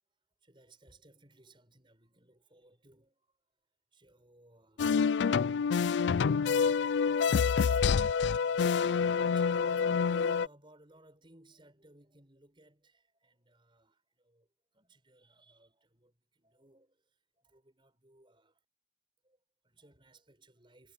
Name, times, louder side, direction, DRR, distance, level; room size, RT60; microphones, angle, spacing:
voice 1, 0.4-3.3 3.9-5.3 6.1-18.6 19.2-20.9, right 1 dB, 30° right, 6.3 m, -60 dB
sound 1, 4.8-10.5, left 6 dB, 90° left, 0.4 m, -27 dB
head